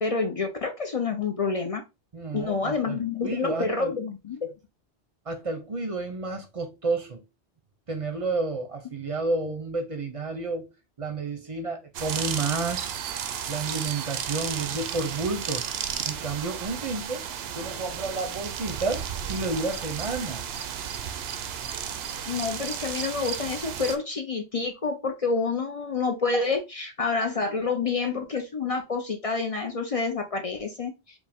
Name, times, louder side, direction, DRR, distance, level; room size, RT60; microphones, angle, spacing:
voice 1, 0.0-1.8 2.3-4.5 22.3-30.9, left 4 dB, 45° left, 0.5 m, -28 dB
voice 2, 2.1-4.0 5.3-7.2 7.9-10.7 11.0-12.9 13.5-15.7 16.1-17.2 17.6-20.4, right 3 dB, 35° right, 0.7 m, -31 dB
sound 1, 11.9-24.0, right 8 dB, 70° right, 0.8 m, -33 dB
4.9 x 2.1 x 3.4 m
omnidirectional pair, 1.1 m